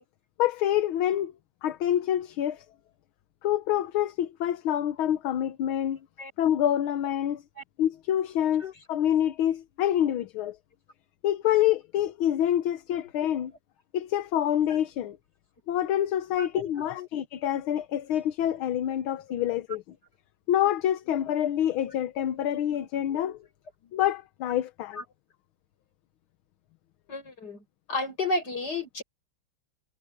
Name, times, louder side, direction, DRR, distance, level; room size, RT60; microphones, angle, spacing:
voice 1, 0.4-1.3 1.6-2.7 3.4-6.0 6.4-7.4 7.8-8.6 8.9-10.6 11.2-13.5 13.9-15.2 15.7-19.8 20.5-23.4 23.9-25.0, left 11 dB, 80° left, 1.7 m, -26 dB
voice 2, 16.4-16.7 17.0-17.1 25.0-25.1 27.1-27.6 27.9-29.0, left 2 dB, 50° left, 7.1 m, -32 dB
omnidirectional pair, 2.2 m